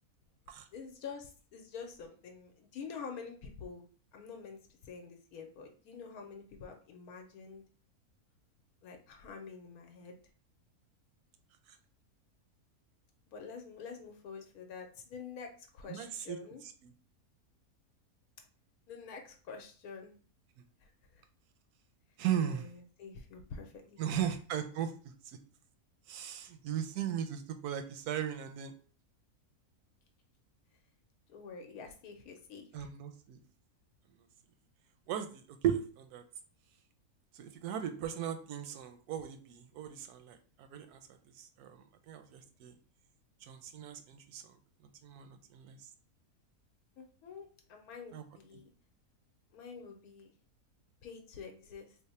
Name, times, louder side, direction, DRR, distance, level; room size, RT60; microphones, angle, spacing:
voice 1, 0.7-3.8 4.1-7.6 8.8-10.2 13.3-16.6 18.9-20.1 20.8-21.2 22.4-24.2 31.3-32.9 47.0-48.7 49.5-50.3 51.0-52.0, left 5 dB, 80° left, 3 dB, 1.1 m, -47 dB
voice 2, 15.9-16.4 16.8-16.9 22.2-22.6 24.0-24.9 26.1-28.7 32.7-33.4 35.1-36.2 37.4-41.0 41.4-41.8 42.1-42.7 43.5-44.4 45.0-45.8 48.1-48.2, right 9 dB, 85° right, 8 dB, 1.1 m, -37 dB
3.2 x 2.0 x 4.1 m, 0.41 s
omnidirectional pair, 1.6 m